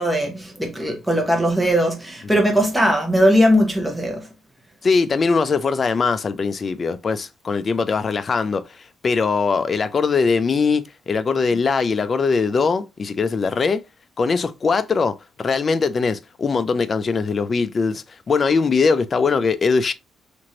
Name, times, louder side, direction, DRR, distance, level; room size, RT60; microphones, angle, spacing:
voice 1, 0.0-4.3, equal, 5° right, 1.0 m, -19 dB
voice 2, 4.8-13.8 14.2-19.9, left 4 dB, 40° left, 0.4 m, -21 dB
2.9 x 2.5 x 2.8 m
cardioid pair, 90°, 0 cm